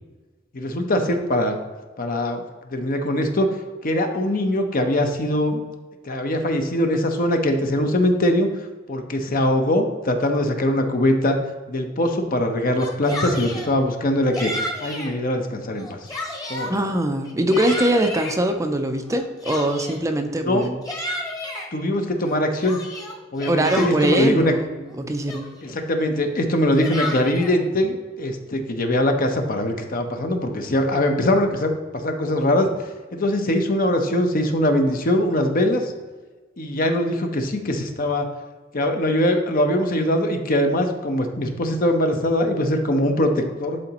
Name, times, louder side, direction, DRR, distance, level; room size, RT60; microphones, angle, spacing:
voice 1, 0.5-1.6 2.0-2.4 2.7-3.5 3.8-5.6 6.0-8.5 8.9-11.4 11.7-14.5 14.8-16.0 16.5-16.7 20.5-20.7 21.7-22.8 23.3-24.5 25.6-32.7 33.1-35.9 36.6-38.3 38.7-43.8, left 1 dB, 50° left, 5 dB, 0.8 m, -22 dB
Yell, 12.7-13.7 14.3-15.1 15.7-16.7 17.2-18.4 19.1-20.1 20.6-21.7 22.2-24.3 24.9-25.0 25.3-25.7 26.5-27.6, left 1 dB, 20° left, 1.2 m, -32 dB
voice 2, 16.7-20.8 23.5-25.5, right 1 dB, 15° right, 6 dB, 0.5 m, -22 dB
11.0 x 4.0 x 2.9 m, 1.3 s
head